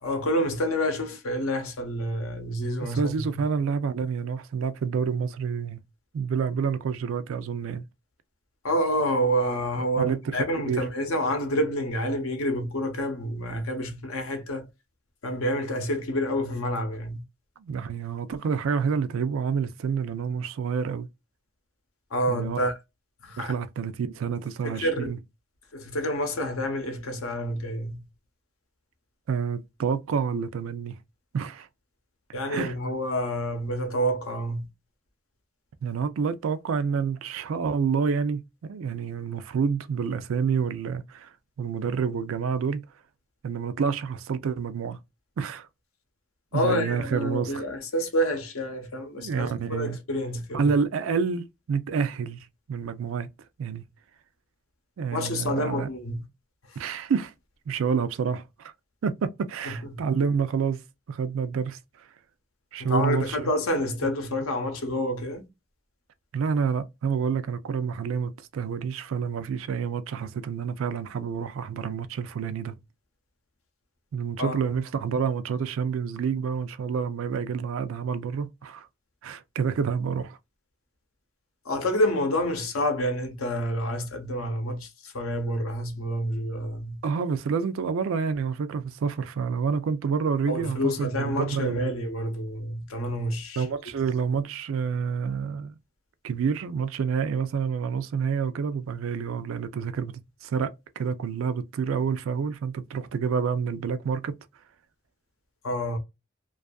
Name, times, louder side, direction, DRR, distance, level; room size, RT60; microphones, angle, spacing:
voice 1, 0.0-3.4 8.6-14.7 15.2-17.2 22.1-22.7 23.2-23.5 24.6-25.1 25.7-28.0 32.3-34.7 46.5-50.7 55.1-56.3 56.7-56.8 59.6-60.0 62.8-65.5 74.4-74.6 81.6-87.0 90.5-93.6 105.6-106.0, equal, 85° left, 0.7 m, -28 dB
voice 2, 2.8-5.8 6.1-7.9 10.0-10.8 17.6-21.1 22.3-22.6 23.4-25.2 29.3-31.0 31.3-31.7 32.5-32.7 35.8-41.3 41.6-42.9 43.4-45.0 45.4-45.7 46.5-47.6 49.1-50.0 50.5-53.3 53.6-53.9 55.0-55.9 56.8-57.3 57.7-58.7 59.0-60.8 61.1-62.1 62.7-63.5 64.0-64.1 66.3-72.8 74.1-78.9 79.2-80.4 87.0-91.9 93.6-95.7 96.2-104.4, right 6 dB, 70° right, 0.4 m, -28 dB
2.6 x 2.3 x 2.2 m
head